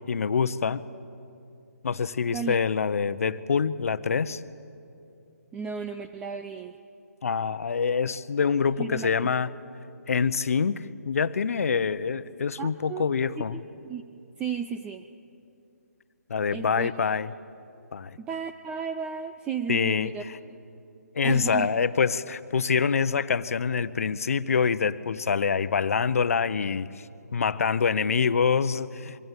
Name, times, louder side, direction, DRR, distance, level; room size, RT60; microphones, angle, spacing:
voice 1, 0.1-0.8 1.8-4.4 7.2-9.5 10.1-13.6 16.3-17.3 17.9-18.2 19.7-20.4 21.1-27.1 27.3-29.2, left 6 dB, 60° left, 14 dB, 0.9 m, -25 dB
voice 2, 5.5-6.8 8.8-9.3 12.6-13.0 13.4-14.0 14.4-15.1 16.5-16.9 18.2-20.2 21.2-21.7, right 6 dB, 10° right, 8 dB, 0.5 m, -34 dB
24.5 x 24.5 x 8.2 m, 2.7 s
figure-of-eight pair, 150°, 9 cm